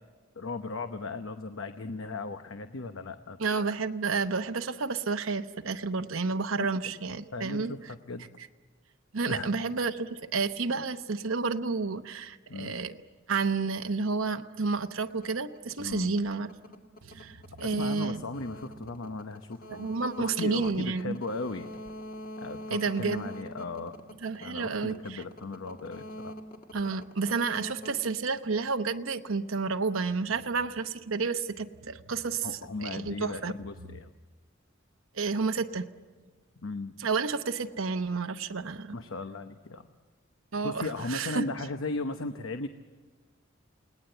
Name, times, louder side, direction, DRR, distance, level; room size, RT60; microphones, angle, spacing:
voice 1, 0.4-3.4 6.6-6.9 7.3-7.8 8.1-8.3 9.3-9.5 12.5-12.8 15.8-16.2 17.6-21.7 22.4-24.0 24.4-26.4 32.4-34.1 36.6-36.9 38.9-39.9 40.6-42.7, left 3 dB, 75° left, 8 dB, 0.9 m, -37 dB
voice 2, 3.4-7.9 9.1-13.0 13.3-16.5 17.0-18.2 19.7-21.2 22.7-23.3 24.2-25.2 26.7-32.5 32.8-33.5 35.1-35.9 37.0-38.9 40.5-41.5, right 4 dB, 80° right, 8 dB, 0.9 m, -30 dB
sound 1, 15.1-29.0, equal, 45° left, 1.8 m, -44 dB
29.5 x 19.0 x 8.0 m, 1.4 s
head